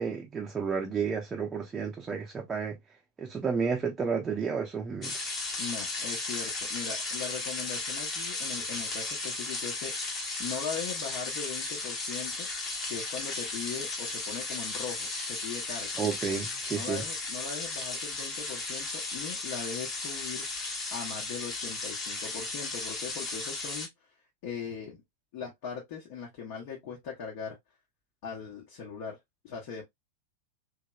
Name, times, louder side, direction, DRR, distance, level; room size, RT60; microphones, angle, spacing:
voice 1, 0.0-2.8 3.2-5.2 16.0-17.0, right 6 dB, 20° right, 0.6 m, -31 dB
sound 1, 5.0-23.9, left 3 dB, 25° left, 1.2 m, -35 dB
voice 2, 5.6-12.5 12.9-15.9 16.7-20.5 20.9-23.9 24.4-25.0 25.3-27.6 28.2-29.2 29.4-29.8, left 6 dB, 50° left, 1.0 m, -40 dB
3.1 x 2.8 x 2.3 m
figure-of-eight pair, 90°, 0 cm